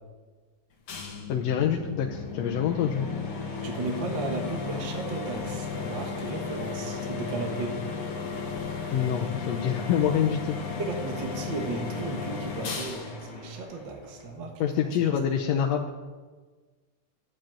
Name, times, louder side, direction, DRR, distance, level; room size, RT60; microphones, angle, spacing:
sound 1, 0.9-14.4, left 5 dB, 50° left, 2.4 m, -35 dB
voice 1, 1.3-3.1 8.9-10.6 14.6-15.9, left 8 dB, 70° left, 0 dB, 1.7 m, -26 dB
voice 2, 3.6-7.8 10.8-15.1, right 3 dB, 50° right, 2 dB, 1.5 m, -35 dB
12.0 x 7.8 x 8.9 m, 1.4 s
omnidirectional pair, 3.5 m